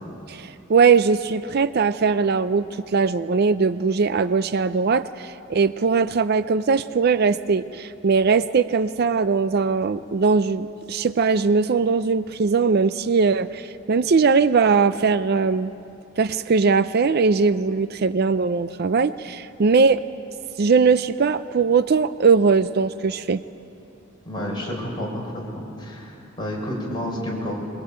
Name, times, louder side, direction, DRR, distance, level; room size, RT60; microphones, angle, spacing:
voice 1, 0.3-2.7 2.9-15.7 16.2-20.0 20.6-23.4, right 5 dB, 50° right, 13 dB, 0.5 m, -20 dB
voice 2, 24.3-27.5, equal, 25° left, -3 dB, 5.9 m, -30 dB
22.0 x 21.5 x 8.8 m, 2.8 s
head